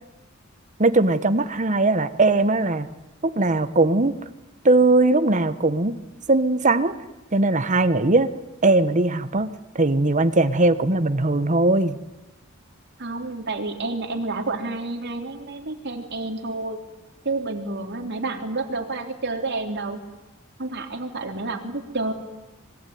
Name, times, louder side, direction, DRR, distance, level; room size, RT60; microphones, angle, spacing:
voice 1, 0.8-2.9 3.2-4.2 4.6-6.0 6.3-6.9 7.3-8.3 8.6-12.0, right 2 dB, 35° right, 11 dB, 1.3 m, -20 dB
voice 2, 13.0-16.8 17.2-20.0 20.6-22.1, right 3 dB, 55° right, 3 dB, 3.5 m, -29 dB
25.5 x 21.5 x 9.6 m, 1.0 s
head